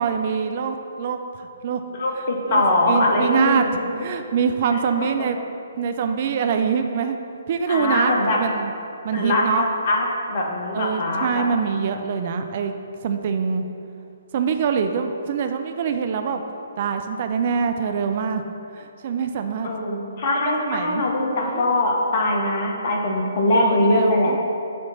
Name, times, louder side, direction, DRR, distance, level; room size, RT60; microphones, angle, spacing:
voice 1, 0.0-1.8 2.1-3.7 4.0-5.4 5.8-7.2 7.5-8.7 9.0-9.7 10.7-12.7 13.0-13.6 14.3-16.4 16.8-18.4 18.7-19.7 20.5-21.1 21.4-21.7 23.5-24.4, right 6 dB, 40° right, 6 dB, 0.3 m, -24 dB
voice 2, 2.0-3.9 5.0-5.3 7.7-8.4 9.1-11.4 19.6-24.3, left 1 dB, 45° left, -1 dB, 1.0 m, -22 dB
6.3 x 2.9 x 5.6 m, 2.6 s
figure-of-eight pair, 130°, 0 cm